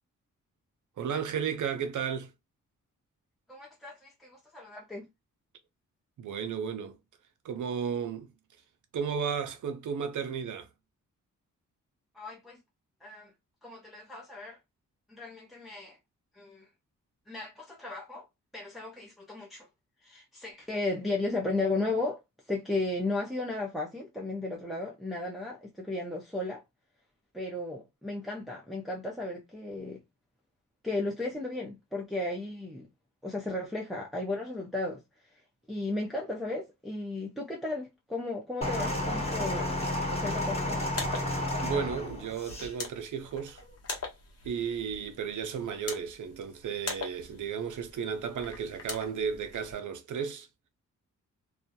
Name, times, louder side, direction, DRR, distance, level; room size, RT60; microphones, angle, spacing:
voice 1, 1.0-2.3 6.2-7.0 7.4-8.3 8.9-10.7 41.6-43.6 44.4-50.5, right 7 dB, 65° right, 0.6 m, -34 dB
voice 2, 3.5-5.1 12.1-12.6 13.0-13.3 13.6-14.6 15.1-16.0 16.4-16.7 17.3-18.3 18.5-19.7 20.0-22.2 22.5-26.6 27.3-30.0 30.8-32.9 33.2-35.0 35.7-39.7 40.2-40.8, left 2 dB, ahead, 0.6 m, -35 dB
Turning off the engine, 38.6-42.7 43.6-43.7, left 1 dB, 20° left, 1.1 m, -31 dB
sound 1, 40.7-49.7, left 3 dB, 50° left, 0.9 m, -43 dB
2.2 x 2.0 x 2.7 m
cardioid pair, 55°, 32 cm